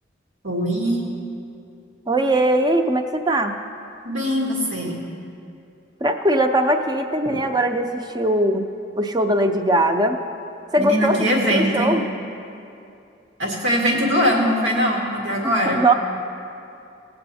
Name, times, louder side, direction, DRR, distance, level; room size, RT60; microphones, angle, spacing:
voice 1, 0.4-1.0 4.0-5.0 7.2-7.4 10.8-11.9 13.4-15.8, equal, 85° right, -1 dB, 1.9 m, -21 dB
voice 2, 2.1-3.6 6.0-8.7 9.0-10.2 10.7-11.2 11.5-12.0 15.7-15.9, right 1 dB, 20° right, 6 dB, 0.6 m, -20 dB
18.5 x 7.8 x 4.2 m, 2.6 s
head